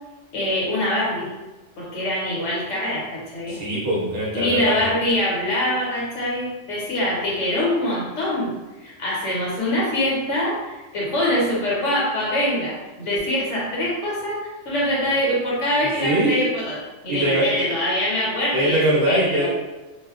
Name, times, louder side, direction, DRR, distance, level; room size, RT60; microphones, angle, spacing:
voice 1, 0.3-1.3 1.8-3.6 4.3-8.5 8.8-16.8 17.0-19.5, left 1 dB, 70° left, -6 dB, 1.4 m, -24 dB
voice 2, 3.5-4.9 16.0-16.4 17.1-17.6 18.5-19.5, right 1 dB, 55° right, -4 dB, 0.7 m, -22 dB
2.7 x 2.2 x 3.6 m, 1.1 s
omnidirectional pair, 1.3 m